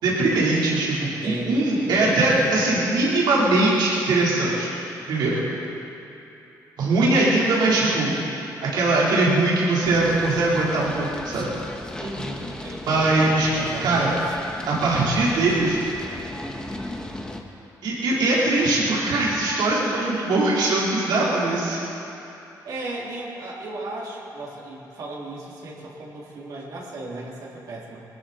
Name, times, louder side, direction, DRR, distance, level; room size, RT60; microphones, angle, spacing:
voice 1, 0.0-1.0 1.2-4.8 5.1-5.4 6.8-8.1 8.6-11.5 12.9-13.5 13.8-14.2 14.7-15.8 17.8-21.8, right 2 dB, 80° right, -6 dB, 4.2 m, -21 dB
voice 2, 1.1-2.3 12.0-14.3 22.6-28.0, right 2 dB, 65° right, -5 dB, 3.3 m, -36 dB
sound 1, 9.8-17.4, left 1 dB, 10° left, 1.4 m, -36 dB
21.0 x 14.0 x 4.4 m, 2.8 s
cardioid pair, 95°, 7 cm